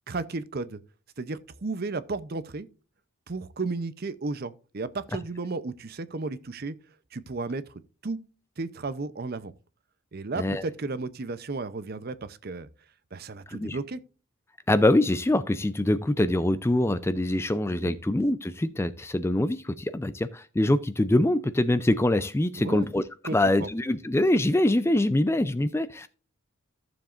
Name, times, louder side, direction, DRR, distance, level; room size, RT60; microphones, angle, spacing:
voice 1, 0.1-0.8 1.2-2.7 3.3-6.8 7.1-7.6 8.0-8.2 8.6-9.5 10.1-12.7 13.1-14.0 17.8-18.0 22.6-22.9 23.2-23.7, right 3 dB, 45° right, 0.6 m, -33 dB
voice 2, 14.7-23.0 23.3-26.1, left 1 dB, 10° left, 0.4 m, -24 dB
14.5 x 7.1 x 2.5 m
head